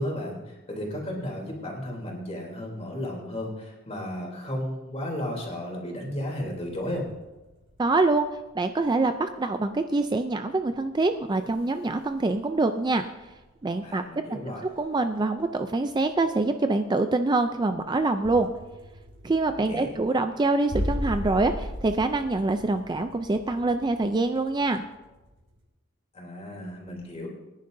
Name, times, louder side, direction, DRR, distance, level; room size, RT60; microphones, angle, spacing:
voice 1, 0.0-7.1 13.8-14.6 19.6-19.9 26.1-27.3, left 1 dB, 30° left, -1 dB, 3.1 m, -34 dB
sound 1, 6.4-14.0 14.3-25.6, equal, 85° right, 5.1 m, -39 dB
voice 2, 7.8-8.3 8.5-13.1 13.6-14.0 14.3-14.4 14.8-18.5 19.2-24.8, right 2 dB, 20° right, 8 dB, 0.4 m, -25 dB
23.5 x 10.5 x 2.6 m, 1.1 s
head